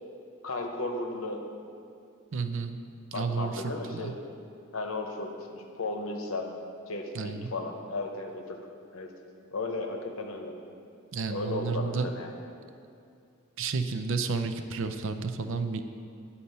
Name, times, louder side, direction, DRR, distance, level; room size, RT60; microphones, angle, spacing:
voice 1, 0.4-1.4 3.1-4.2 4.7-6.5 6.9-8.6 8.9-9.1 9.5-10.5 11.3-12.4, left 2 dB, 75° left, 3 dB, 0.9 m, -35 dB
voice 2, 2.3-2.8 3.1-3.5 3.9-4.1 7.1-7.5 11.1-12.1 13.6-15.8, right 4 dB, 65° right, 8 dB, 0.5 m, -31 dB
10.0 x 4.2 x 5.4 m, 2.4 s
head